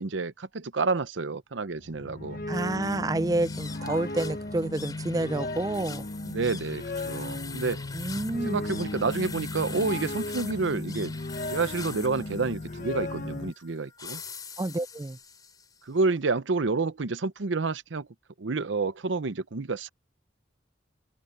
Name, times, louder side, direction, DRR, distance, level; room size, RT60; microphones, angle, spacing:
voice 1, 0.0-2.4 6.2-7.8 8.4-11.1 11.5-14.2 15.8-18.1 18.4-19.9, right 3 dB, 90° right, 0.8 m, -29 dB
sound 1, 1.7-13.5, left 2 dB, 50° left, 0.9 m, -35 dB
voice 2, 2.5-6.1 7.9-8.6 14.6-15.2, right 2 dB, 20° right, 0.4 m, -29 dB
sound 2, 3.3-15.8, left 5 dB, 20° left, 3.2 m, -44 dB
head